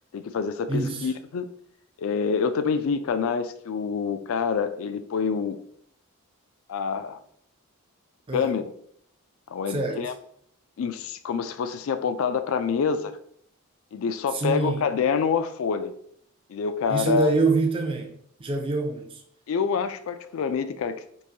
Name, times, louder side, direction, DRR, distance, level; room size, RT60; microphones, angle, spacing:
voice 1, 0.1-1.5 2.0-5.6 6.7-7.2 8.3-8.7 9.5-10.1 10.8-13.1 13.9-15.9 16.5-17.4 19.5-21.0, left 6 dB, 65° left, 0.3 m, -26 dB
voice 2, 0.7-1.1 8.3-8.5 9.7-10.0 14.3-14.8 16.9-19.2, right 3 dB, 25° right, 0.4 m, -26 dB
4.7 x 2.5 x 2.7 m
head